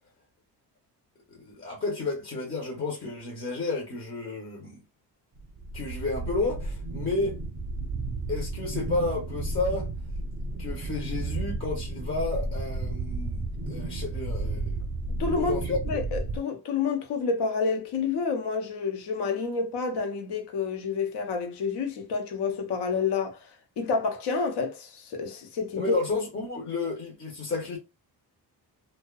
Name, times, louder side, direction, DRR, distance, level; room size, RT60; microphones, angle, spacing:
voice 1, 1.3-4.8 5.7-7.4 8.3-9.9 10.6-14.8 15.3-15.8 25.7-27.8, left 3 dB, 30° left, 0.6 m, -31 dB
sound 1, 5.4-16.4, right 3 dB, 35° right, 0.6 m, -33 dB
voice 2, 15.2-15.6 15.9-23.4 23.8-25.9, left 4 dB, 80° left, 0.7 m, -29 dB
2.5 x 2.2 x 2.2 m
cardioid pair, 130°, 40 cm